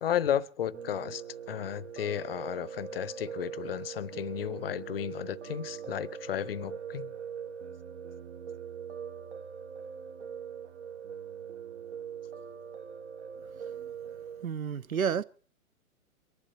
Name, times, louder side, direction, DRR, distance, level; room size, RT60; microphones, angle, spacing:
voice 1, 0.0-7.1, left 10 dB, 40° left, 0.7 m, -33 dB
Piano, 0.7-14.4, right 7 dB, 55° right, 1.2 m, -42 dB
voice 2, 14.4-15.2, right 7 dB, 70° right, 0.9 m, -31 dB
23.0 x 11.5 x 4.1 m
figure-of-eight pair, 120°, 43 cm